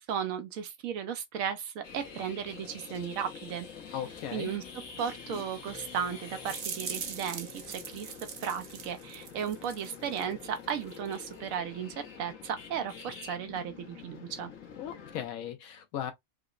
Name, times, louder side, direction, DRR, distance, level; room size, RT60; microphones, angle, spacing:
voice 1, 0.1-3.7 4.3-4.6 5.0-8.1 8.4-14.5, right 8 dB, 80° right, 1.0 m, -35 dB
sound 1, 1.8-15.3, left 6 dB, 70° left, 1.3 m, -47 dB
voice 2, 3.9-4.5 14.8-16.1, left 10 dB, 85° left, 1.1 m, -37 dB
sound 2, 6.5-10.3 10.6-11.3, right 6 dB, 50° right, 0.6 m, -41 dB
4.8 x 2.1 x 2.3 m
omnidirectional pair, 1.4 m